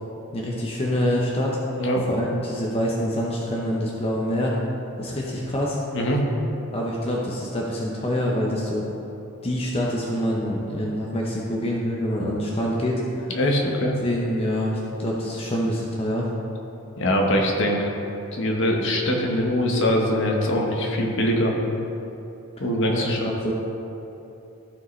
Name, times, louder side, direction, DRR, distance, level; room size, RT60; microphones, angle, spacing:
voice 1, 0.3-1.6 2.1-4.5 5.0-5.8 6.7-8.9 9.4-13.3 14.0-16.3 22.9-23.5, equal, 25° left, -3 dB, 0.7 m, -26 dB
voice 2, 13.3-13.9 17.0-17.9 18.3-21.5 22.6-23.3, equal, 55° left, 0 dB, 1.1 m, -22 dB
14.0 x 4.9 x 3.2 m, 3.0 s
head